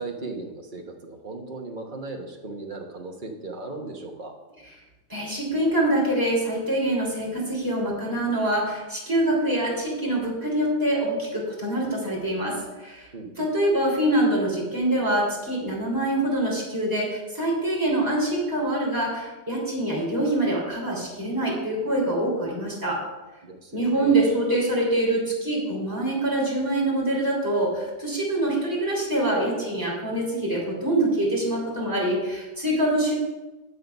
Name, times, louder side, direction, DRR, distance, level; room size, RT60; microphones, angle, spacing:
voice 1, 0.0-4.3 13.1-13.5 23.4-24.3, right 3 dB, 35° right, 2 dB, 1.2 m, -37 dB
voice 2, 5.1-13.1 13.4-23.0 23.7-33.1, right 1 dB, 10° right, -4 dB, 3.3 m, -25 dB
8.4 x 7.6 x 5.3 m, 1.1 s
omnidirectional pair, 1.7 m